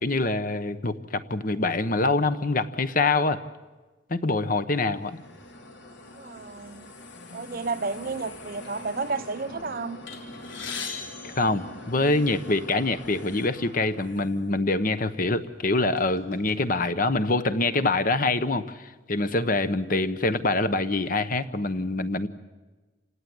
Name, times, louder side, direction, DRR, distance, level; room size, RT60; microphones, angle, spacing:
voice 1, 0.0-3.4 4.1-5.2 11.2-22.3, left 2 dB, 45° left, 12 dB, 1.1 m, -25 dB
sound 1, 4.8-14.5, left 1 dB, 65° left, 2.6 m, -44 dB
voice 2, 6.1-6.9 7.3-10.1, right 4 dB, 50° right, 12 dB, 0.8 m, -32 dB
sound 2, 10.1-12.4 13.2-13.4 13.7-13.9 14.7-14.9 15.4-16.5, left 5 dB, 85° left, 3.9 m, -39 dB
28.0 x 18.0 x 9.7 m, 1.2 s
head